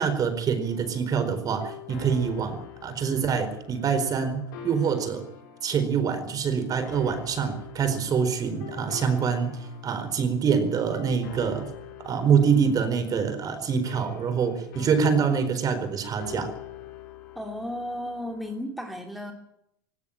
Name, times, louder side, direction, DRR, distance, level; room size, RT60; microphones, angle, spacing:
voice 1, 0.0-5.2 5.6-11.7 12.0-16.5, right 6 dB, 35° right, 10 dB, 4.3 m, -25 dB
sound 1, 0.6-18.6, left 9 dB, 70° left, 5.2 m, -45 dB
voice 2, 17.3-19.3, left 1 dB, ahead, 2 dB, 2.8 m, -34 dB
18.0 x 17.5 x 8.9 m, 0.79 s
hypercardioid pair, 100°, 11 cm